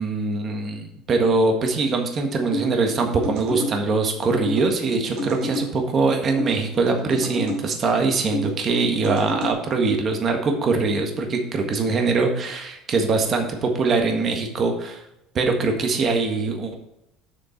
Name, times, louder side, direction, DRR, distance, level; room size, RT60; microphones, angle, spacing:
voice 1, 0.0-15.0 15.3-16.8, right 3 dB, 30° right, 4 dB, 1.5 m, -22 dB
sound 1, 2.5-3.7 4.4-5.7 6.4-7.6 8.3-9.5, equal, 70° right, 3.1 m, -29 dB
7.4 x 6.4 x 4.4 m, 0.85 s
cardioid pair, 150°, 0 cm